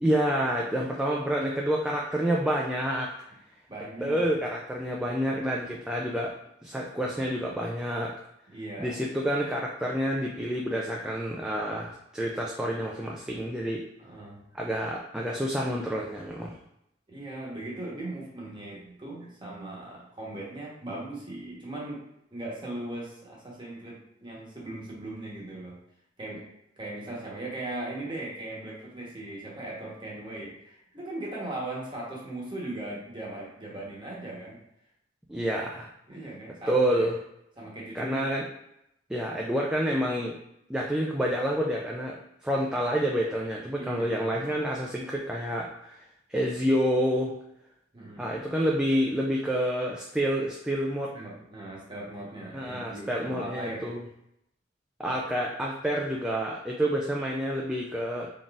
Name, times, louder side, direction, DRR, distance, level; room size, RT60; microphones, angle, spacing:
voice 1, 0.0-3.1 4.0-6.3 6.6-8.1 8.8-13.8 14.5-16.6 35.3-35.9 36.7-37.2 37.9-38.5 39.1-40.3 40.7-46.0 46.3-47.3 48.2-51.1 52.5-54.0 55.0-58.3, equal, 5° right, -2 dB, 0.3 m, -28 dB
voice 2, 3.7-4.2 8.5-8.9 14.0-14.4 17.1-22.0 22.3-25.8 26.2-26.5 26.8-34.6 36.1-37.1 37.6-38.4 43.8-44.5 47.9-48.3 51.1-53.9 55.1-55.2, right 1 dB, 25° right, -4 dB, 1.0 m, -39 dB
3.9 x 3.7 x 2.4 m, 0.80 s
head